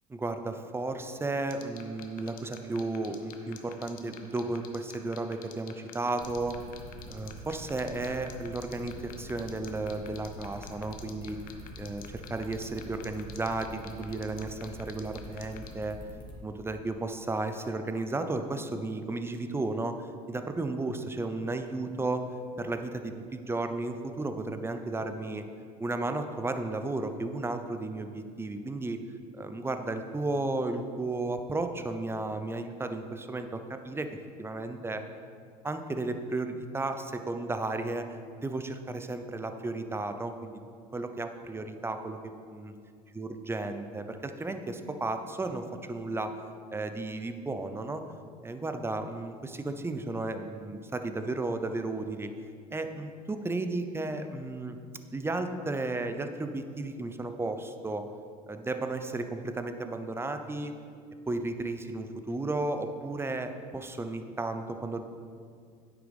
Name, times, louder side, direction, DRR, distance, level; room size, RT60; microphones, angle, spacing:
voice 1, 0.1-6.6 7.1-11.4 11.8-16.0 16.4-22.2 22.6-25.4 25.8-29.0 29.3-34.1 34.4-35.0 35.6-40.6 40.9-42.2 42.5-42.7 43.2-46.3 46.7-48.0 48.4-52.3 52.7-54.8 55.1-58.0 58.5-60.7 61.3-65.0, right 2 dB, 10° right, 8 dB, 0.7 m, -34 dB
sound 1, 1.5-15.7, left 12 dB, 50° left, 1.0 m, -46 dB
sound 2, 6.2-16.3, left 1 dB, 25° left, 2.4 m, -46 dB
9.5 x 8.3 x 3.5 m, 2.2 s
hypercardioid pair, 70°, 19 cm